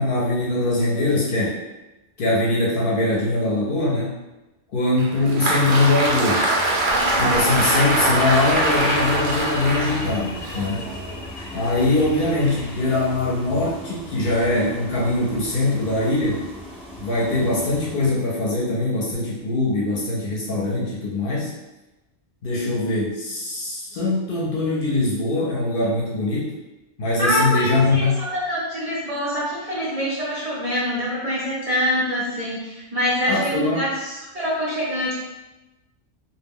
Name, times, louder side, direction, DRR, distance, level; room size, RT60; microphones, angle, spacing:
voice 1, 0.0-1.6 2.2-4.1 4.7-6.5 7.2-10.9 11.5-16.4 17.0-21.5 22.4-26.5 27.0-28.3 33.3-33.8, left 2 dB, 60° left, -4 dB, 0.6 m, -22 dB
Applause, 5.0-11.3, right 2 dB, 90° right, 0.9 m, -23 dB
sound 1, 5.8-17.9, equal, 10° left, 0.4 m, -39 dB
sound 2, 6.9-13.8, left 2 dB, 90° left, 0.3 m, -35 dB
voice 2, 27.2-35.2, equal, 60° right, -6 dB, 0.4 m, -25 dB
2.1 x 2.1 x 3.5 m, 1.0 s
omnidirectional pair, 1.2 m